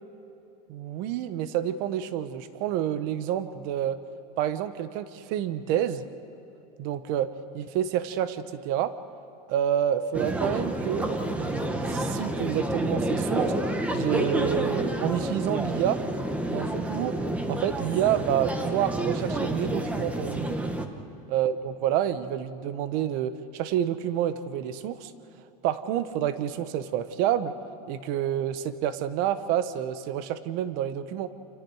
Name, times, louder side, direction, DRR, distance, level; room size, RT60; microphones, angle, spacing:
voice 1, 0.7-4.0 4.4-6.0 6.8-8.9 9.5-13.5 13.9-16.0 16.5-17.2 17.5-20.6 21.3-25.1 25.6-27.5 27.9-31.3, right 10 dB, 45° right, 12 dB, 1.2 m, -28 dB
sound 1, 10.1-20.9, right 1 dB, 5° right, 1.2 m, -29 dB
29.0 x 28.5 x 4.9 m, 3.0 s
supercardioid pair, 165°, 20 cm